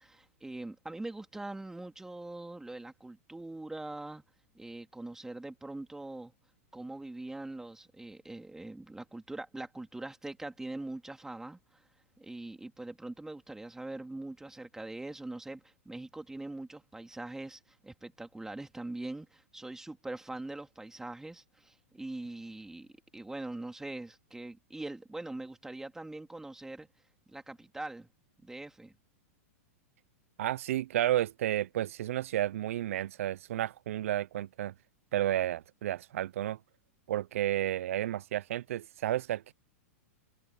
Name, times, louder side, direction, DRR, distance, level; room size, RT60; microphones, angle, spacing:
voice 1, 0.0-4.2 4.5-6.3 6.7-11.8 12.2-22.9 23.1-26.9 27.3-28.1 28.4-28.9, right 2 dB, 5° right, 3.1 m, -42 dB
voice 2, 30.4-34.7 35.1-36.6 37.1-39.5, right 13 dB, 70° right, 0.8 m, -32 dB
hypercardioid pair, 110°, 8 cm